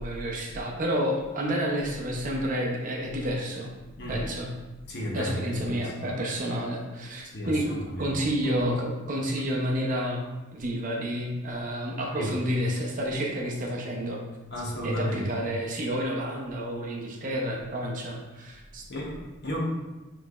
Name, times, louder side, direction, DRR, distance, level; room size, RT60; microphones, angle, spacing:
voice 1, 0.0-3.7 4.1-4.5 5.1-10.2 10.5-14.2 14.8-18.8, equal, 40° right, -1 dB, 0.6 m, -30 dB
voice 2, 4.9-6.1 7.3-8.2 8.4-8.5 12.2-12.4 14.5-15.3 18.9-19.6, equal, 50° left, -2 dB, 0.9 m, -33 dB
5.9 x 3.2 x 2.4 m, 1.1 s
head